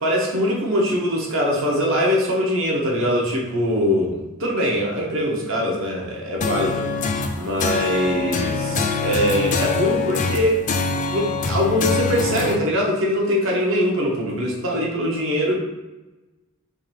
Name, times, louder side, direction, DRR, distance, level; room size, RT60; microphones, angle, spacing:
voice 1, 0.0-4.1 4.4-6.9 7.3-10.6 11.1-15.6, equal, 60° right, -2 dB, 1.0 m, -22 dB
sound 1, 6.4-12.6, left 4 dB, 35° left, 0.3 m, -24 dB
3.9 x 3.0 x 4.4 m, 1.1 s
head